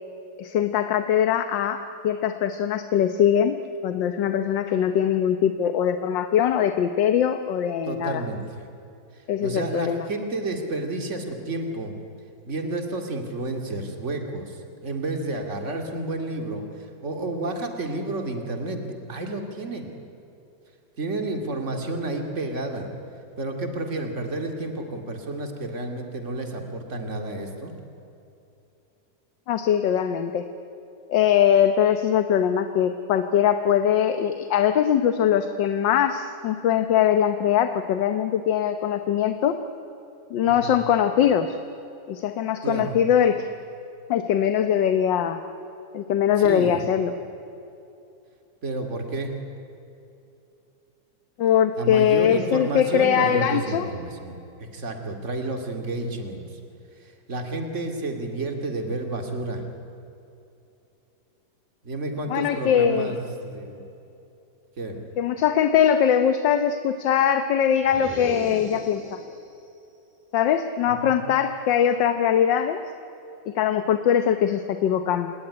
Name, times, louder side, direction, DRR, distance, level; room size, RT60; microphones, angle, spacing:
voice 1, 0.4-1.8 2.0-3.6 3.8-8.2 9.3-10.1 29.5-30.5 31.1-39.6 40.3-41.6 42.1-43.5 44.1-45.4 45.9-47.1 51.4-53.9 62.3-63.1 65.2-69.2 70.3-72.8 73.5-75.3, left 9 dB, 75° left, 8 dB, 1.6 m, -21 dB
voice 2, 7.9-8.6 9.1-12.0 12.5-19.9 21.0-22.9 23.4-27.7 40.4-40.8 42.6-43.0 46.4-46.8 48.6-49.3 51.8-56.6 57.0-59.6 61.8-63.8 64.8-65.0 70.9-71.2, right 2 dB, 40° right, 4 dB, 2.6 m, -31 dB
sound 1, 67.8-69.5, right 1 dB, 5° right, 3.6 m, -36 dB
27.0 x 19.0 x 9.9 m, 2.8 s
omnidirectional pair, 2.1 m